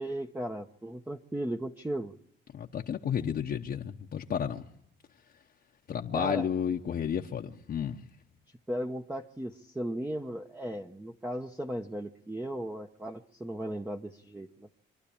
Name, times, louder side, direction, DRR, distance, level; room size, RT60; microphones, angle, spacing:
voice 1, 0.0-2.1 6.1-6.5 8.7-14.7, right 1 dB, 10° right, 0.9 m, -36 dB
voice 2, 2.5-4.6 5.9-8.0, left 8 dB, 55° left, 1.0 m, -32 dB
26.0 x 12.0 x 8.6 m
cardioid pair, 90°, 20 cm